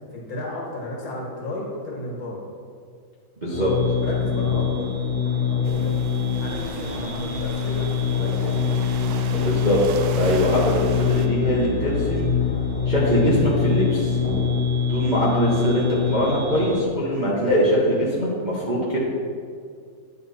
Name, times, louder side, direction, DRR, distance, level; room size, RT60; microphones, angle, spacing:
voice 1, 0.1-2.4 4.0-4.9 5.2-6.0 6.4-8.8 9.1-9.5, left 2 dB, 75° left, -3 dB, 2.4 m, -33 dB
voice 2, 3.4-3.7 9.4-9.8 10.1-10.8 11.1-12.3 12.9-14.2 14.9-19.0, equal, 30° right, -7 dB, 0.8 m, -22 dB
sound 1, 3.5-16.8, left 6 dB, 50° left, 0.7 m, -24 dB
sound 2, 4.2-11.4, equal, 55° right, 0.3 m, -38 dB
sound 3, 5.6-11.3, right 6 dB, 80° right, 1.3 m, -38 dB
9.4 x 4.2 x 4.1 m, 2.2 s
omnidirectional pair, 2.2 m